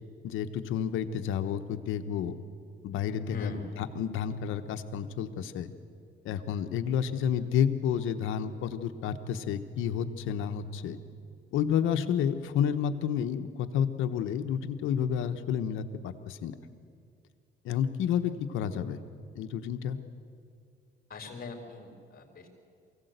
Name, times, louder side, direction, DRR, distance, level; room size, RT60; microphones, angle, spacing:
voice 1, 0.2-2.3 2.8-3.5 4.0-5.7 6.2-11.0 11.5-16.5 17.6-19.0 19.3-20.0, left 8 dB, 90° left, 9 dB, 1.1 m, -30 dB
voice 2, 3.2-3.7 21.1-22.5, left 3 dB, 50° left, 4 dB, 4.0 m, -40 dB
23.0 x 16.5 x 8.1 m, 2.3 s
cardioid pair, 90°, 20 cm